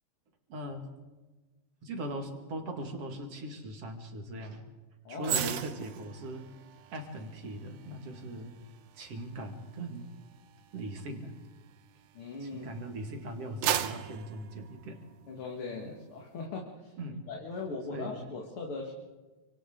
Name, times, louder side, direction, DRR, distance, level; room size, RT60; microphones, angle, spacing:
voice 1, 0.5-0.9 1.8-4.6 5.1-6.5 6.9-8.5 8.9-10.1 10.7-11.3 12.4-15.0 15.8-15.9 17.0-17.3 17.9-18.2, right 1 dB, 55° right, 3 dB, 3.1 m, -40 dB
voice 2, 5.0-5.4 12.1-12.7 15.3-16.9 17.3-18.9, left 3 dB, 50° left, 0 dB, 2.5 m, -39 dB
sound 1, 5.2-12.6 13.1-15.5 15.8-16.0, right 10 dB, 75° right, 2.1 m, -38 dB
29.0 x 25.5 x 3.9 m, 1.2 s
omnidirectional pair, 3.5 m